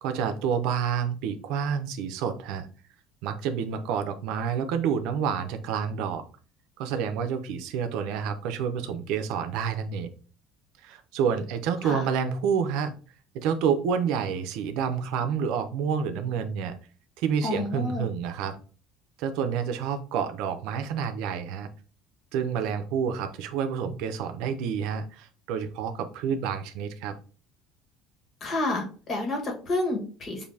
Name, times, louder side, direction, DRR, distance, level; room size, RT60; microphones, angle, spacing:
voice 1, 0.0-2.7 3.2-6.2 6.8-10.1 10.8-12.9 13.3-16.8 17.2-18.6 19.2-21.7 22.3-27.1, right 7 dB, 75° right, 8 dB, 0.6 m, -28 dB
voice 2, 17.4-18.1 28.4-30.4, left 2 dB, 35° left, 2 dB, 1.6 m, -29 dB
6.7 x 2.7 x 2.7 m, 0.38 s
cardioid pair, 135°, 0 cm